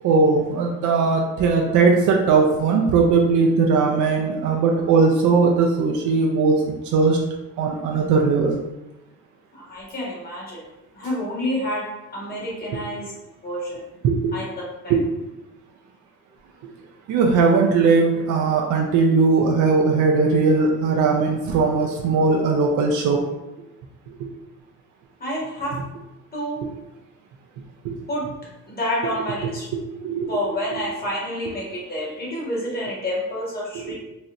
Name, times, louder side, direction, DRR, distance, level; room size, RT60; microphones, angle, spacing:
voice 1, 0.0-7.2 7.6-8.6 12.7-12.8 14.0-14.3 14.9-15.0 17.1-23.2 24.2-24.3 25.7-25.8 27.8-27.9 29.4-30.3 30.7-30.8 33.7-33.9, right 4 dB, 75° right, 1 dB, 0.5 m, -19 dB
voice 2, 9.5-10.6 11.0-11.8 12.1-13.1 13.4-13.8 14.3-14.4 14.8-14.9 25.2-25.7 26.3-26.6 28.1-28.2 28.7-29.7 30.3-33.9, equal, 30° left, -5 dB, 1.5 m, -28 dB
4.1 x 2.0 x 2.5 m, 0.97 s
cardioid pair, 90°, 30 cm